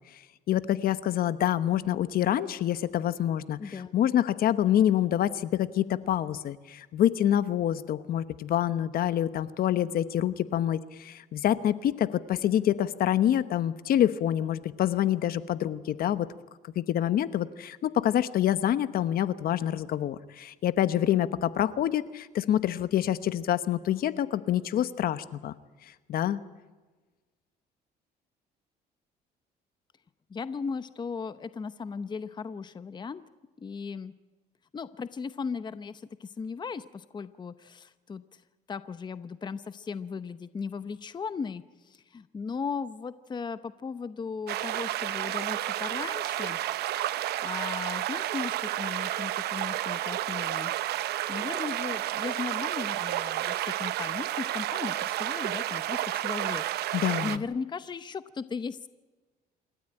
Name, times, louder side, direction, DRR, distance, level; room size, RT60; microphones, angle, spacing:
voice 1, 0.5-16.3 16.7-25.5 26.1-26.4 56.9-57.4, left 11 dB, 60° left, 14 dB, 1.1 m, -26 dB
voice 2, 3.6-3.9 30.3-33.2 33.6-34.1 34.7-38.4 38.7-46.6 47.0-56.6 57.2-58.9, left 5 dB, 25° left, 13 dB, 0.8 m, -37 dB
sound 1, 44.5-57.4, right 14 dB, 75° right, 0.9 m, -31 dB
27.0 x 13.5 x 9.0 m, 1.3 s
cardioid pair, 110°, 17 cm